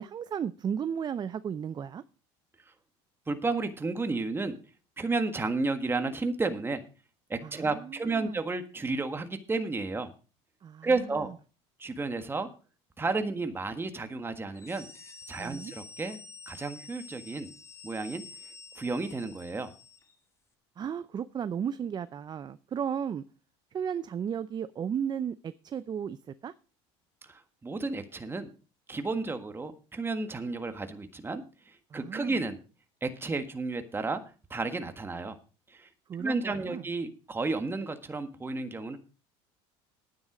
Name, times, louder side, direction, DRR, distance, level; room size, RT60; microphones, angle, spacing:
voice 1, 0.0-2.0 7.4-8.4 10.6-11.3 15.4-15.7 20.8-23.2 23.7-26.5 31.9-32.4 36.1-36.8, right 8 dB, 30° right, 14 dB, 0.6 m, -35 dB
voice 2, 3.3-4.5 5.0-6.8 7.3-10.1 10.8-11.3 11.8-12.5 13.0-14.9 15.3-16.2 16.5-17.5 17.8-18.2 18.8-19.7 27.2-28.5 28.9-32.6 33.0-34.2 34.5-35.4 35.7-35.9 36.2-39.0, right 3 dB, 15° right, 7 dB, 1.6 m, -32 dB
sound 1, 14.5-20.2, left 4 dB, 20° left, 1.7 m, -49 dB
10.5 x 9.4 x 5.0 m, 0.35 s
supercardioid pair, 100°, 14 cm